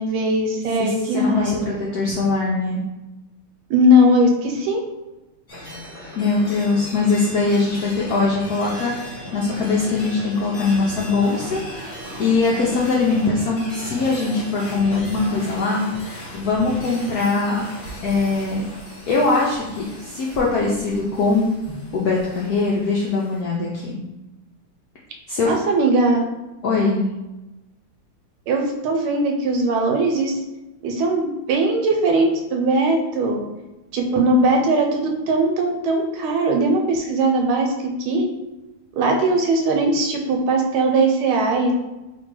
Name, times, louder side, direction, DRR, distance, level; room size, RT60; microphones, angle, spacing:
voice 1, 0.0-1.6 3.7-4.8 21.7-21.8 25.5-26.2 28.5-30.4 30.8-33.4 33.9-37.7 38.0-38.2 39.0-41.7, right 1 dB, 80° right, 3 dB, 1.5 m, -19 dB
voice 2, 0.8-2.8 6.1-17.7 18.0-18.7 19.1-21.5 21.9-24.0 25.3-25.5 26.6-27.0, left 3 dB, 75° left, -3 dB, 0.8 m, -22 dB
sound 1, 5.5-23.4, left 1 dB, 30° left, 1.1 m, -37 dB
sound 2, 8.6-15.4, right 1 dB, 40° right, 1.1 m, -40 dB
3.2 x 2.9 x 4.6 m, 1.0 s
omnidirectional pair, 2.3 m